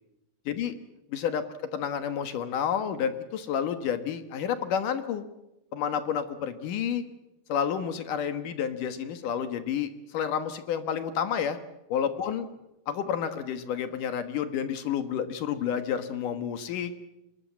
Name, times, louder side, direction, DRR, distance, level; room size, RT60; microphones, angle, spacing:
voice 1, 1.1-1.4 1.7-5.2 5.7-7.0 7.5-11.6 11.9-12.5 12.9-16.9, left 8 dB, 65° left, 10 dB, 2.5 m, -30 dB
24.5 x 20.5 x 7.4 m, 0.91 s
omnidirectional pair, 4.7 m